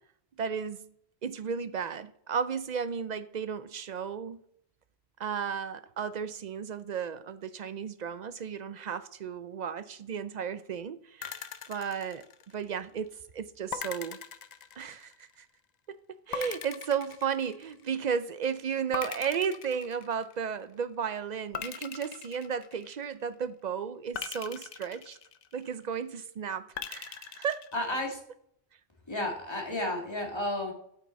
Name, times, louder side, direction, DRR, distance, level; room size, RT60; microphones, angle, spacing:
voice 1, 0.4-0.9 1.2-4.4 5.2-12.2 12.5-14.2 14.8-15.5 15.9-16.0 16.3-25.2 25.5-27.7, right 7 dB, 55° right, 0.5 m, -34 dB
sound 1, 11.2-12.8 13.7-15.3 16.3-18.0 18.9-20.5 21.5-23.2 24.1-25.8 26.8-28.2, left 7 dB, 50° left, 0.6 m, -41 dB
voice 2, 27.7-28.2 29.1-30.7, left 1 dB, 25° left, 1.9 m, -32 dB
8.5 x 5.9 x 4.1 m
omnidirectional pair, 1.1 m